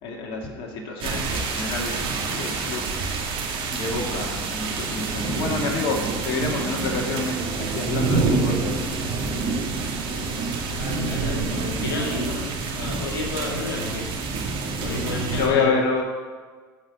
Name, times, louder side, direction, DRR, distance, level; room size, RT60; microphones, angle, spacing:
voice 1, 0.0-2.9 3.3-3.4 3.7-8.6 15.3-16.0, left 4 dB, 55° left, 0 dB, 2.2 m, -28 dB
sound 1, 1.0-15.5, right 4 dB, 55° right, 2.3 m, -27 dB
voice 2, 10.7-14.1 14.6-15.7, left 3 dB, 85° left, 0 dB, 2.1 m, -31 dB
14.0 x 5.7 x 6.3 m, 1.5 s
hypercardioid pair, 80°, 11 cm